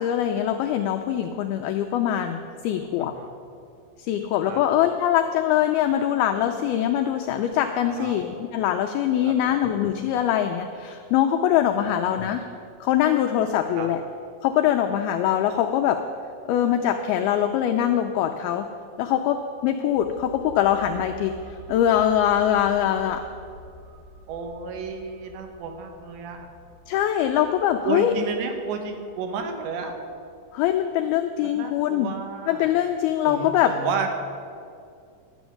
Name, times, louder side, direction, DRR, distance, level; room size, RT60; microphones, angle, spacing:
voice 1, 0.0-3.1 4.0-12.5 12.8-14.0 14.4-16.0 16.5-23.2 26.9-28.2 30.5-32.2 32.5-33.7, left 10 dB, 85° left, 6 dB, 2.2 m, -23 dB
voice 2, 3.0-3.3 4.5-4.6 8.0-8.2 9.3-9.6 11.8-11.9 13.8-13.9 24.3-26.5 27.8-30.0 31.4-32.7 33.2-34.2, right 5 dB, 80° right, 5 dB, 3.4 m, -32 dB
sound 1, 20.0-31.3 31.6-31.7, equal, 30° right, 2.7 m, -48 dB
12.0 x 7.1 x 9.3 m, 2.4 s
omnidirectional pair, 5.0 m